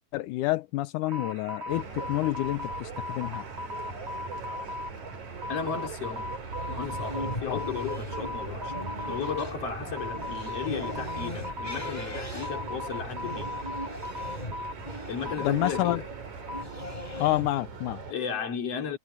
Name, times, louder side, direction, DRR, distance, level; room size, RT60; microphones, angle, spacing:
voice 1, 0.0-3.5 7.4-7.6 15.4-16.0 17.2-18.0, left 17 dB, 85° left, 2.3 m, -29 dB
sound 1, 1.1-16.6, left 2 dB, 35° right, 1.0 m, -39 dB
sound 2, 1.7-18.1, right 5 dB, 70° right, 5.5 m, -41 dB
voice 2, 5.5-6.3 6.7-8.7 9.1-13.6 15.1-16.1 18.1-19.0, left 7 dB, 50° left, 4.3 m, -34 dB
sound 3, 6.6-17.5, equal, 15° left, 5.5 m, -40 dB
omnidirectional pair, 3.5 m